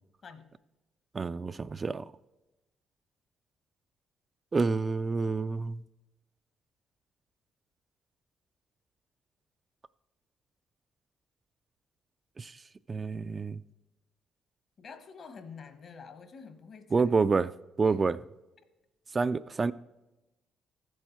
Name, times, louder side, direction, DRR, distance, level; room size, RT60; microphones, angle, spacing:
voice 1, 1.1-2.1 4.5-5.8 12.4-12.5 12.9-13.6 16.9-17.5 17.8-18.2 19.1-19.7, right 4 dB, 35° right, 0.3 m, -28 dB
voice 2, 14.8-17.1 17.8-18.0 18.6-18.7, left 5 dB, 55° left, 1.2 m, -48 dB
13.5 x 7.8 x 4.5 m
supercardioid pair, 70°, 0 cm